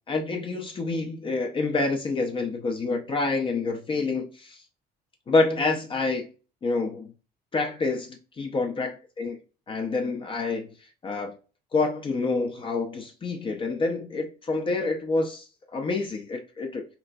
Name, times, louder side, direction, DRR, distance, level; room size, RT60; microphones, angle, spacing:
voice 1, 0.1-4.6 5.3-6.3 6.6-7.1 7.5-8.9 9.2-9.4 9.7-10.7 11.0-11.3 11.7-16.9, left 3 dB, 30° left, 0.5 m, -27 dB
2.9 x 2.5 x 2.2 m
cardioid pair, 110°, 17 cm